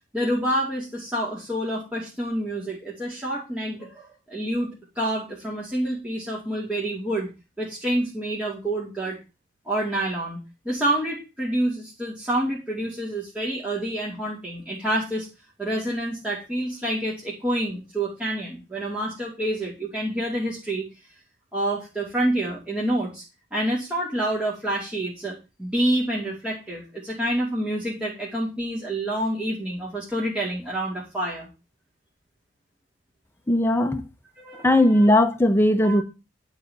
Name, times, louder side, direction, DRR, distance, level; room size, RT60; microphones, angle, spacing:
voice 1, 0.1-7.3 7.6-9.2 9.7-15.3 15.6-20.9 21.5-23.2 23.5-31.5 34.4-35.1 35.8-36.0, right 1 dB, 5° right, 2.4 m, -28 dB
voice 2, 33.5-34.0 34.6-36.0, left 1 dB, 15° left, 0.9 m, -18 dB
11.0 x 4.0 x 7.0 m
head